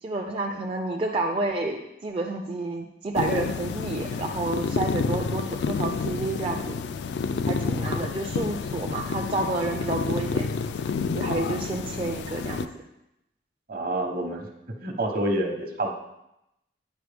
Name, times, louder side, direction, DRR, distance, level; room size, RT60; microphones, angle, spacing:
voice 1, 0.0-6.8 7.4-10.5 11.1-12.7, right 2 dB, 30° right, 0 dB, 0.4 m, -30 dB
sound 1, 3.2-12.7, left 5 dB, 70° left, 0.3 m, -29 dB
voice 2, 13.7-14.5 14.8-15.9, right 1 dB, 55° right, 3 dB, 0.9 m, -27 dB
9.1 x 4.4 x 3.4 m, 0.86 s
head